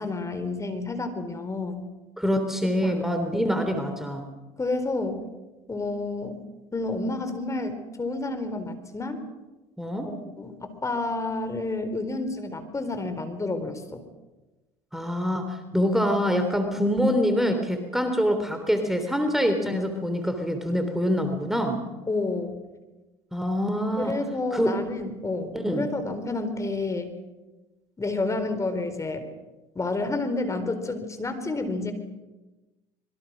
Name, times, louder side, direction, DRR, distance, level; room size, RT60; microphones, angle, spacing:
voice 1, 0.0-1.8 2.6-3.0 3.3-3.4 4.6-5.2 5.7-6.4 6.7-9.2 10.0-14.0 22.1-22.5 24.0-27.1 28.0-29.3 29.7-31.9, left 2 dB, 20° left, 8 dB, 4.3 m, -30 dB
voice 2, 2.2-4.3 9.8-10.1 14.9-21.8 23.3-24.1 24.5-24.7 25.5-25.9, equal, ahead, 6 dB, 3.5 m, -25 dB
26.0 x 23.0 x 6.3 m, 1.1 s
hypercardioid pair, 80°, 15 cm